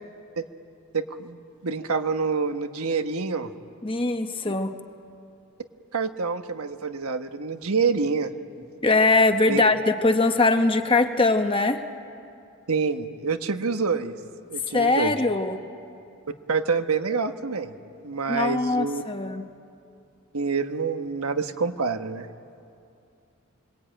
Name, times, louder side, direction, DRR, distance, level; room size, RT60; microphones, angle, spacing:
voice 1, 0.9-3.5 5.9-8.3 9.5-9.6 12.7-14.1 14.5-15.1 16.5-17.7 18.0-19.0 20.3-22.3, right 5 dB, 80° right, 8 dB, 1.2 m, -27 dB
voice 2, 3.8-4.7 8.8-11.8 14.7-15.6 18.3-19.4, left 3 dB, 25° left, 7 dB, 1.0 m, -21 dB
28.5 x 22.0 x 9.0 m, 2.6 s
head